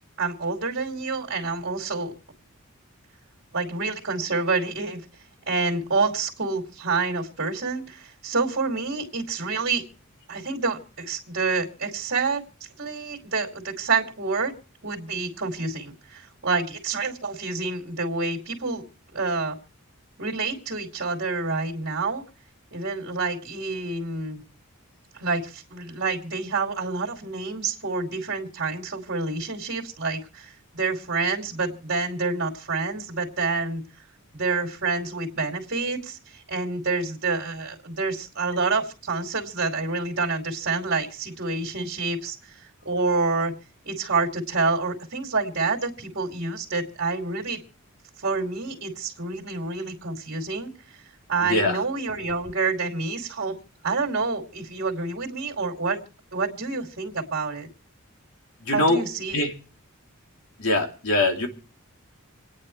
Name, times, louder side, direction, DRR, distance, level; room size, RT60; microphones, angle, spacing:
voice 1, 0.2-2.1 3.5-5.0 5.5-9.8 10.3-12.4 12.8-14.5 14.8-18.8 19.1-19.6 20.2-22.2 22.7-24.4 25.1-33.8 34.3-42.6 42.8-43.5 43.8-47.6 48.2-50.7 51.3-53.5 53.8-56.0 56.3-57.7 58.7-59.4, right 4 dB, 55° right, -2 dB, 2.7 m, -28 dB
voice 2, 51.4-51.8 58.6-59.0 59.3-59.5 60.6-61.5, left 2 dB, 80° left, 2 dB, 2.9 m, -22 dB
28.0 x 9.7 x 3.2 m, 0.38 s
head